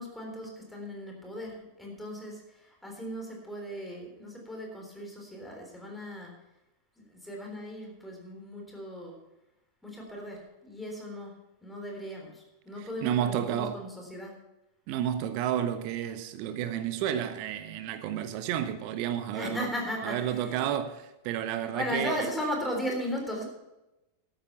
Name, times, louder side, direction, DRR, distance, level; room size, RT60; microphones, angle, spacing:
voice 1, 0.0-6.3 7.1-9.2 9.8-11.3 11.6-14.3 19.3-20.6 21.5-23.4, equal, 5° left, 3.7 m, -37 dB
voice 2, 12.8-13.8 14.9-19.7 20.0-22.3, right 10 dB, 45° right, 0.8 m, -31 dB
12.0 x 9.2 x 5.6 m
figure-of-eight pair, 90°, 0 cm